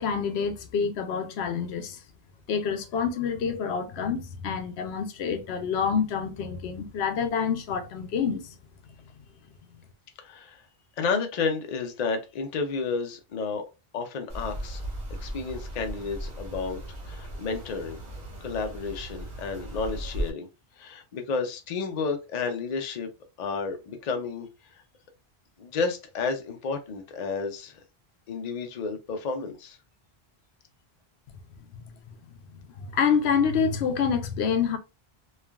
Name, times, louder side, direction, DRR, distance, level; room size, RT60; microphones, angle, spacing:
voice 1, 0.0-2.0 2.5-8.5 32.8-34.8, left 6 dB, 80° left, 0.8 m, -27 dB
voice 2, 10.2-10.6 11.0-13.6 13.9-14.8 15.2-18.0 18.4-20.5 20.8-23.1 23.4-24.5 24.7-24.8 25.6-27.8 28.3-29.8, left 4 dB, 50° left, 0.5 m, -31 dB
sound 1, 14.3-20.3, right 1 dB, 30° right, 0.8 m, -37 dB
3.2 x 2.3 x 2.2 m
omnidirectional pair, 1.1 m